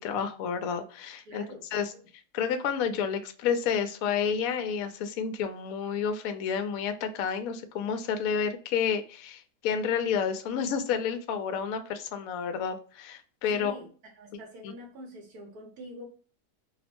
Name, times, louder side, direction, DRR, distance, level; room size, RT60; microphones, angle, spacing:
voice 1, 0.0-1.4 1.7-1.9 2.3-13.7, left 7 dB, 70° left, 8 dB, 0.9 m, -30 dB
voice 2, 1.3-2.1 13.5-16.1, equal, 70° right, 1 dB, 1.3 m, -46 dB
3.0 x 2.1 x 2.8 m, 0.40 s
omnidirectional pair, 1.7 m